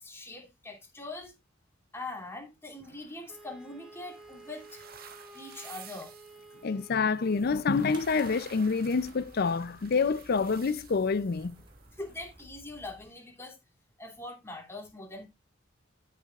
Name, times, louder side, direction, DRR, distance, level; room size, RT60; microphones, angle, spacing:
voice 1, 0.0-1.3 1.9-4.8 5.3-6.1 12.0-13.6 14.0-15.3, left 2 dB, 15° left, 2.8 m, -42 dB
sound 1, 2.8-12.4, right 8 dB, 50° right, 1.3 m, -53 dB
Wind instrument woodwind instrument, 3.3-7.7, right 2 dB, 5° right, 2.0 m, -52 dB
voice 2, 6.6-11.6, left 4 dB, 55° left, 0.5 m, -27 dB
sound 2, 7.2-13.1, right 1 dB, 25° right, 2.2 m, -55 dB
14.0 x 6.7 x 2.4 m
head